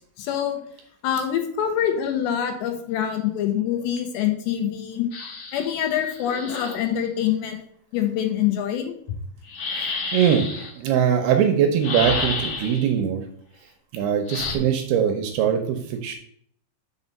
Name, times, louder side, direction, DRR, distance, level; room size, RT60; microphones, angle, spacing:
voice 1, 0.2-0.6 1.0-5.1 5.5-7.6 7.9-8.9, left 10 dB, 80° left, 4 dB, 3.2 m, -25 dB
sound 1, 5.1-6.9 9.4-10.7 11.8-12.9 14.3-14.5, left 3 dB, 60° left, 2.1 m, -30 dB
voice 2, 9.7-10.5 10.8-13.2 13.9-16.2, right 8 dB, 75° right, 5 dB, 2.5 m, -22 dB
6.4 x 4.9 x 5.5 m, 0.64 s
omnidirectional pair, 5.1 m